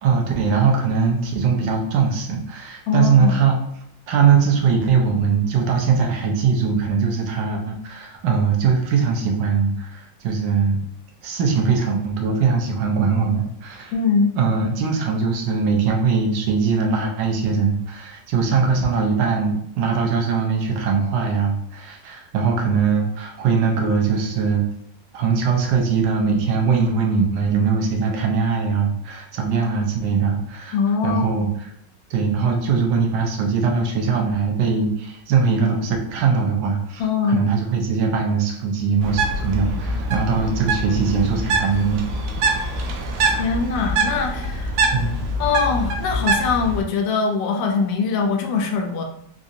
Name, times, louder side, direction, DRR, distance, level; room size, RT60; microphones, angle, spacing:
voice 1, 0.0-3.6 4.1-10.8 11.2-13.9 14.3-24.6 25.1-30.8 31.0-31.7 32.1-37.0 37.3-42.0 44.9-45.1, right 5 dB, 90° right, 1 dB, 1.3 m, -21 dB
voice 2, 2.9-3.4 13.9-14.3 30.7-31.3 37.0-37.4 43.3-44.9 45.4-49.0, left 5 dB, 90° left, 3 dB, 1.3 m, -22 dB
Bird, 39.0-46.8, right 2 dB, 70° right, 1.1 m, -24 dB
3.9 x 2.7 x 2.4 m, 0.71 s
omnidirectional pair, 2.0 m